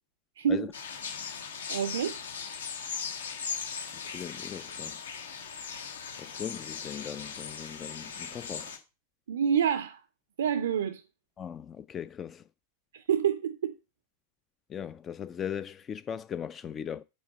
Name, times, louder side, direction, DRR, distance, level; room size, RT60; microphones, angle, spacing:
voice 1, 0.4-0.7 1.7-2.2 9.3-10.0 10.4-11.0 12.9-13.7, right 8 dB, 65° right, 0.4 m, -27 dB
sound 1, 0.7-8.8, left 6 dB, 70° left, 1.2 m, -39 dB
voice 2, 4.0-5.0 6.2-8.7 11.4-12.4 14.7-17.0, left 8 dB, 25° left, 0.3 m, -39 dB
6.2 x 4.4 x 5.9 m
figure-of-eight pair, 90°, 0 cm